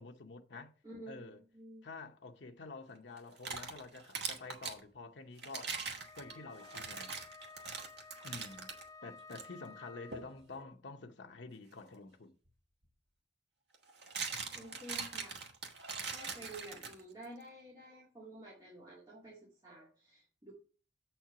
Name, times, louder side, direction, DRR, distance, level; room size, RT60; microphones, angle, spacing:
voice 1, 0.0-0.7 1.1-1.4 1.8-5.7 6.1-7.1 8.2-8.7 9.0-12.3, left 3 dB, 70° left, 0.8 m, -49 dB
voice 2, 0.8-1.9 14.3-15.4 16.1-20.5, right 1 dB, 20° right, 2.0 m, -51 dB
sound 1, 3.2-4.8 5.4-8.8 9.3-9.5 10.1-10.3 12.5-12.6 13.7-17.2, right 5 dB, 65° right, 1.3 m, -42 dB
Wind instrument woodwind instrument, 6.0-10.5, left 4 dB, 15° left, 0.4 m, -54 dB
7.4 x 4.5 x 5.7 m
head